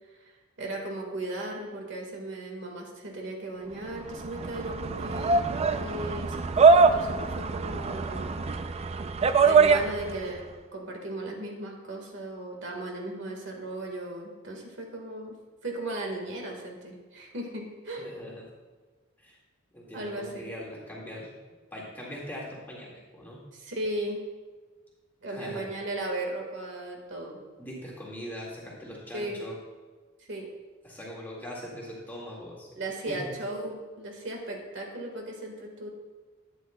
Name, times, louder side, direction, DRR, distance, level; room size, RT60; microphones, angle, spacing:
voice 1, 0.6-8.9 9.4-18.1 19.9-20.5 23.5-24.2 25.2-27.4 29.1-29.4 30.2-30.5 32.8-35.9, right 1 dB, 60° right, 1 dB, 1.5 m, -37 dB
sound 1, 3.9-10.3, right 4 dB, 30° right, 0.3 m, -23 dB
voice 2, 18.0-18.5 19.2-19.4 19.7-21.3 21.7-23.5 25.3-25.7 27.6-29.6 30.8-32.8 33.1-33.3, equal, 10° left, -5 dB, 1.8 m, -41 dB
12.0 x 9.3 x 2.2 m, 1.3 s
head